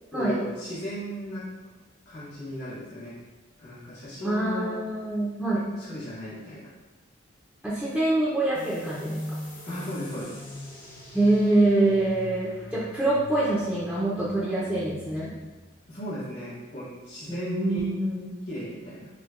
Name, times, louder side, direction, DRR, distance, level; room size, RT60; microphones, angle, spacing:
voice 1, 0.1-1.4 2.0-3.1 3.6-4.8 5.8-6.7 9.6-10.4 15.9-17.9 18.5-19.1, equal, 60° left, -11 dB, 1.5 m, -36 dB
voice 2, 4.2-5.7 7.6-9.2 11.1-15.3 17.3-18.3, right 2 dB, ahead, -8 dB, 0.5 m, -25 dB
sound 1, 8.5-15.8, left 1 dB, 45° left, 0.9 m, -41 dB
6.2 x 2.2 x 2.5 m, 1.2 s
head